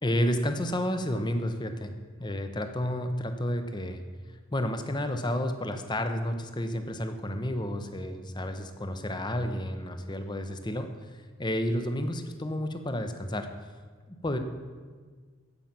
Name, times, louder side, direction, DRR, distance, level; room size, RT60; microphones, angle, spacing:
voice 1, 0.0-1.9 2.2-4.0 4.5-13.5 14.1-14.4, left 1 dB, 20° left, 7 dB, 0.8 m, -31 dB
15.0 x 5.7 x 7.4 m, 1.5 s
head